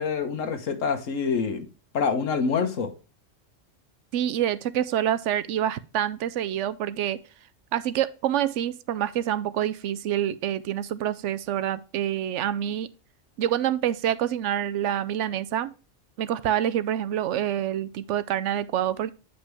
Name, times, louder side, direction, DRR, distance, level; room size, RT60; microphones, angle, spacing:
voice 1, 0.0-1.7 1.9-2.9, left 5 dB, 80° left, 1.5 m, -26 dB
voice 2, 4.1-7.2 7.7-12.9 13.4-15.7 16.2-19.1, right 11 dB, 70° right, 0.9 m, -27 dB
8.7 x 5.2 x 3.3 m
omnidirectional pair, 1.3 m